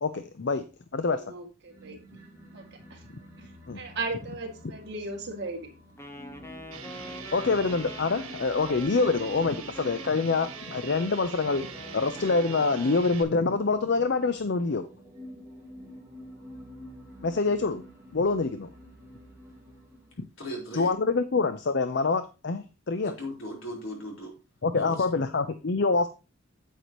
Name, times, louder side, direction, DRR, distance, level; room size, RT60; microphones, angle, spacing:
voice 1, 0.0-0.6 0.9-1.2 3.7-3.8 7.3-11.7 11.9-14.9 17.2-17.8 18.1-18.7 20.2-20.3 20.7-23.1 24.6-26.1, left 4 dB, 55° left, 0.5 m, -26 dB
voice 2, 1.0-2.0 2.5-2.6 2.9-3.0 3.4-5.7, right 3 dB, 50° right, 2.3 m, -37 dB
sound 1, 1.7-20.3, equal, 15° right, 2.1 m, -48 dB
Wind instrument woodwind instrument, 6.0-13.1, equal, 10° left, 0.9 m, -45 dB
sound 2, 6.7-13.2, right 7 dB, 85° right, 1.8 m, -43 dB
voice 3, 20.4-20.9 23.0-24.3 24.7-25.0, equal, 70° left, 4.0 m, -37 dB
9.2 x 8.4 x 3.0 m
head